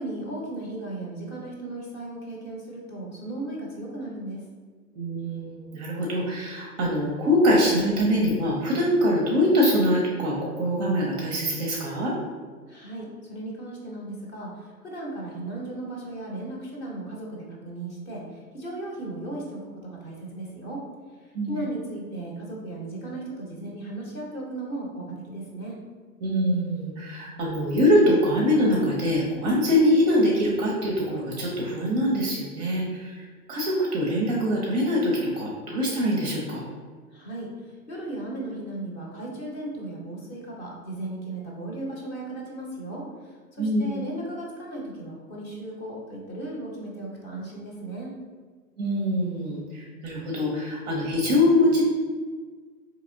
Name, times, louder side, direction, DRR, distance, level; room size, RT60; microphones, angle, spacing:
voice 1, 0.0-4.5 12.7-20.8 21.2-25.8 37.1-48.1, right 2 dB, 25° left, -2 dB, 0.7 m, -36 dB
voice 2, 4.9-12.1 21.3-21.6 26.2-36.6 43.6-44.0 48.8-51.8, equal, 30° right, -2 dB, 0.5 m, -23 dB
4.1 x 2.8 x 2.6 m, 1.5 s
figure-of-eight pair, 110°, 46 cm